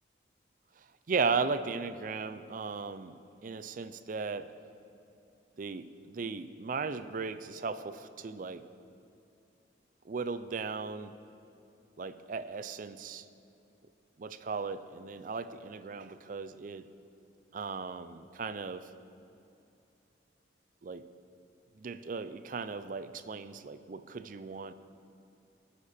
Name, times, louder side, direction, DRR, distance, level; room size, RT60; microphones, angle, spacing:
voice 1, 1.1-3.1 3.4-4.5 5.6-8.7 10.1-11.1 12.0-13.3 14.2-16.9 17.5-18.9 20.8-21.1 21.8-24.7, right 4 dB, 45° right, 12 dB, 0.4 m, -36 dB
19.5 x 6.6 x 4.3 m, 2.7 s
head